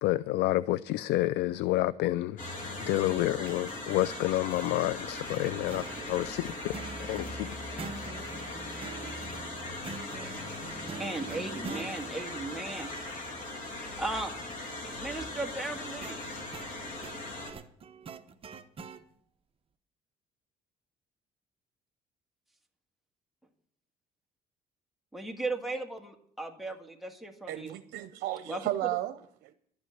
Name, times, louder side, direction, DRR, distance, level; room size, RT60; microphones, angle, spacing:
voice 1, 0.0-2.4 2.9-6.7 7.0-7.5, left 16 dB, 80° left, 0.4 m, -29 dB
sound 1, 2.4-17.5, left 2 dB, 50° left, 3.0 m, -39 dB
sound 2, 5.3-11.9 15.6-19.0, right 5 dB, 35° right, 0.9 m, -45 dB
voice 2, 11.0-12.9 13.6-14.3 15.0-16.2 25.1-27.8 28.5-29.0, right 2 dB, ahead, 1.8 m, -36 dB
voice 3, 27.5-29.5, right 15 dB, 90° right, 0.7 m, -34 dB
12.0 x 8.2 x 8.2 m
cardioid pair, 110°, 17 cm